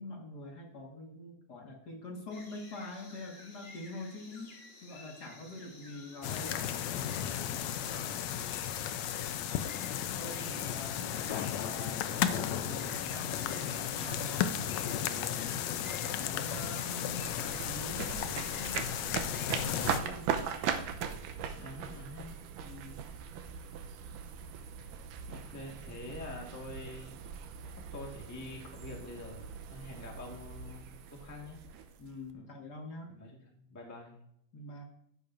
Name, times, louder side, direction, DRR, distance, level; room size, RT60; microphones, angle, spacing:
voice 1, 0.0-6.9 10.1-15.8 16.2-19.0 19.5-20.4 22.6-23.1 32.0-33.2 34.5-34.8, left 1 dB, 40° left, 1 dB, 1.7 m, -45 dB
sound 1, 2.3-19.6, left 2 dB, 55° left, 0.6 m, -53 dB
sound 2, 6.2-20.0, left 10 dB, 80° left, 1.6 m, -34 dB
voice 2, 7.8-8.4 10.1-10.7 11.7-11.8 21.5-22.3 25.3-27.2 27.7-31.6 32.3-32.5 33.1-34.2, left 2 dB, 15° left, -1 dB, 0.6 m, -47 dB
sound 3, 17.1-32.3, right 7 dB, 80° right, 2.3 m, -40 dB
14.0 x 10.5 x 2.6 m, 0.73 s
omnidirectional pair, 3.8 m